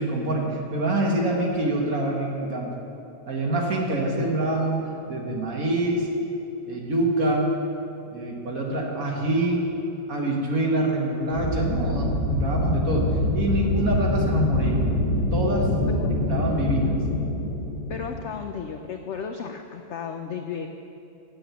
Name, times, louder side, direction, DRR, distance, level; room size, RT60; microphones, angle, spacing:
voice 1, 0.0-2.8 3.3-6.1 6.6-7.5 8.1-9.7 10.1-14.8 15.3-15.7 16.3-16.9, right 2 dB, 55° right, -1 dB, 2.0 m, -25 dB
sound 1, 11.3-18.4, left 1 dB, 25° left, 2.2 m, -25 dB
voice 2, 15.9-16.2 17.9-20.7, left 6 dB, 70° left, 5 dB, 0.6 m, -34 dB
8.8 x 7.5 x 8.2 m, 2.9 s
omnidirectional pair, 1.8 m